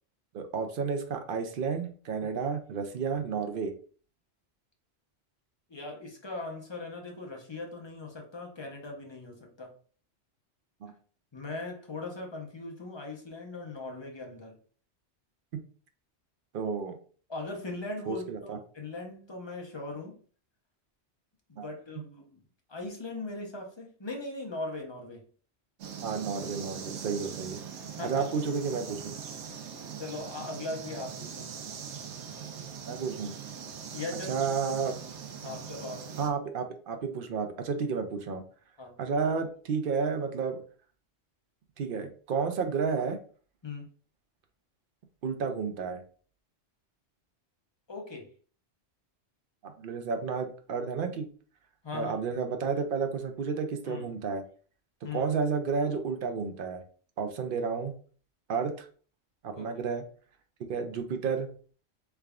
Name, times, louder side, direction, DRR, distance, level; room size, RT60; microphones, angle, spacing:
voice 1, 0.3-3.7 10.8-10.9 16.5-16.9 18.1-18.6 21.6-21.7 26.0-27.6 28.0-29.2 32.8-33.3 34.3-35.0 36.2-38.4 39.0-40.6 41.8-43.2 45.2-46.0 49.6-51.3 51.9-54.4 55.1-56.8 57.2-57.9 58.5-58.9 59.4-60.0 60.7-61.5, right 5 dB, 60° right, 0.7 m, -31 dB
voice 2, 5.7-9.7 11.3-14.6 17.3-20.2 21.5-22.4 22.7-25.2 28.0-28.3 30.0-31.5 33.9-34.5 35.4-36.2 38.8-38.9 43.6-43.9 47.9-48.3 51.8-52.2 53.9-54.1 55.0-55.2 59.6-59.7, left 3 dB, 30° left, 0.7 m, -39 dB
sound 1, 25.8-36.3, right 7 dB, 85° right, 0.9 m, -41 dB
3.5 x 3.3 x 2.4 m
omnidirectional pair, 1.1 m